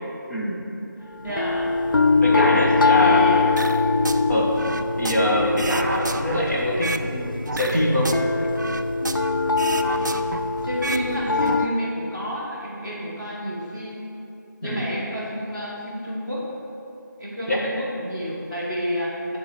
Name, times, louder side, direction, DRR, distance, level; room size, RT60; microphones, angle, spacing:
voice 1, 0.3-0.6 1.2-1.4 2.2-3.2 4.3-4.5 5.0-8.1 14.6-14.8 17.5-17.7, equal, 50° left, -5 dB, 1.6 m, -24 dB
voice 2, 1.0-1.7 2.3-3.4 9.8-10.3 10.6-14.0 14.6-16.4 17.2-19.4, equal, 15° left, -11 dB, 1.5 m, -29 dB
sound 1, 1.3-11.7, left 4 dB, 80° left, 0.5 m, -22 dB
sound 2, 3.6-4.2 4.6-7.1 7.5-9.3 9.6-11.1 11.3-11.6, right 3 dB, 60° right, 0.4 m, -31 dB
9.4 x 3.9 x 6.4 m, 2.8 s
figure-of-eight pair, 175°, 11 cm